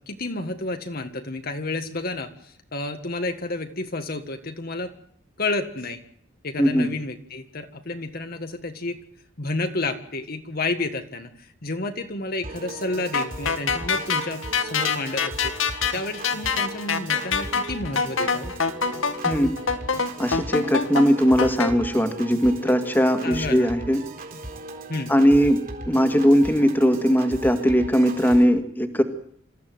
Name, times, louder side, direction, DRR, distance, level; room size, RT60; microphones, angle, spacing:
voice 1, 0.1-4.9 5.4-6.0 6.4-9.0 9.4-15.5 15.9-18.5 23.2-23.7 24.9-25.1, left 2 dB, 50° left, 6 dB, 1.6 m, -30 dB
voice 2, 6.6-6.9 19.2-19.5 20.2-24.0 25.1-25.6 25.9-29.0, equal, 10° left, 7 dB, 2.0 m, -19 dB
Piano / Organ, 12.4-28.4, right 1 dB, 45° right, 3.9 m, -37 dB
sound 1, 13.1-21.7, left 5 dB, 80° left, 1.9 m, -25 dB
26.0 x 14.5 x 9.4 m, 0.64 s
head